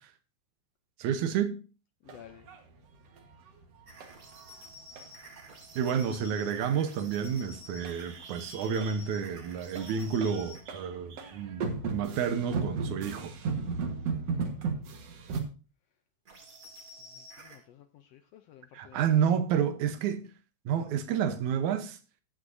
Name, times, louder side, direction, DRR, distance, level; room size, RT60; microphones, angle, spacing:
voice 1, 1.0-1.6 5.8-13.3 18.7-20.3 20.7-22.0, right 8 dB, 80° right, 2.3 m, -30 dB
voice 2, 2.0-2.5 17.1-19.1, left 11 dB, 80° left, 1.5 m, -53 dB
sound 1, 2.1-4.6 4.9-5.0 5.4-5.5 5.7-6.0 6.3-6.4 6.6-7.4 7.6-15.4, right 4 dB, 60° right, 2.3 m, -36 dB
sound 2, 3.9-10.7 16.2-17.6, equal, 35° right, 1.8 m, -50 dB
14.5 x 8.8 x 2.7 m
omnidirectional pair, 3.5 m